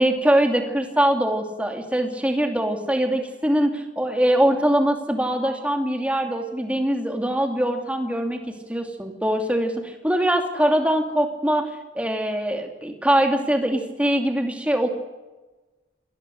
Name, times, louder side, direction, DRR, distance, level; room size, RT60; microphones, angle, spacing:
voice 1, 0.0-14.9, right 1 dB, 5° right, 3 dB, 2.6 m, -22 dB
26.5 x 19.5 x 6.5 m, 1.2 s
head